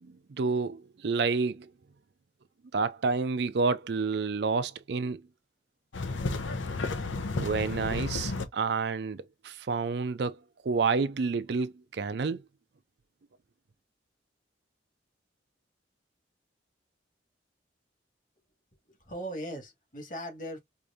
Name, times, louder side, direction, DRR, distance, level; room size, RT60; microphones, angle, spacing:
voice 1, 0.0-1.7 2.7-5.2 7.4-10.4 10.6-12.4, right 4 dB, 60° right, 0.4 m, -29 dB
sound 1, 5.9-8.5, left 3 dB, 85° left, 0.8 m, -32 dB
voice 2, 18.9-20.6, equal, 45° left, 2.0 m, -39 dB
4.8 x 2.6 x 2.6 m
head